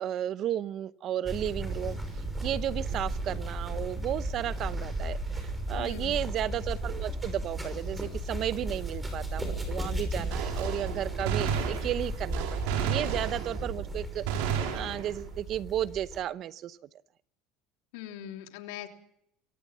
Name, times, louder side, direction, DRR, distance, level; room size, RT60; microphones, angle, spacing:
voice 1, 0.0-2.0 2.4-16.8, right 11 dB, 45° right, 18 dB, 0.8 m, -33 dB
sound 1, 1.2-16.2, right 1 dB, 10° right, 6.0 m, -35 dB
voice 2, 5.8-6.2 17.9-18.9, left 11 dB, 80° left, 5 dB, 3.2 m, -41 dB
Gunshot gunfire, 10.3-13.8 14.3-15.4, right 8 dB, 80° right, 4.7 m, -32 dB
24.0 x 17.5 x 7.3 m, 0.73 s
supercardioid pair, 125°, 0 cm